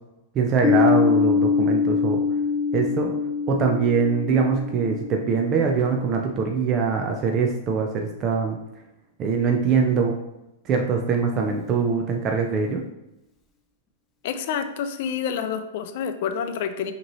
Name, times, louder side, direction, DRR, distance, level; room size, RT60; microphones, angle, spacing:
voice 1, 0.3-2.2 2.7-3.1 3.5-8.6 9.2-10.1 10.7-12.8, right 5 dB, 30° right, 2 dB, 0.5 m, -23 dB
Piano, 0.6-6.0, left 5 dB, 20° left, 0.6 m, -23 dB
voice 2, 14.2-16.9, left 7 dB, 60° left, 9 dB, 0.4 m, -28 dB
5.1 x 3.0 x 3.0 m, 0.92 s
hypercardioid pair, 135°, 0 cm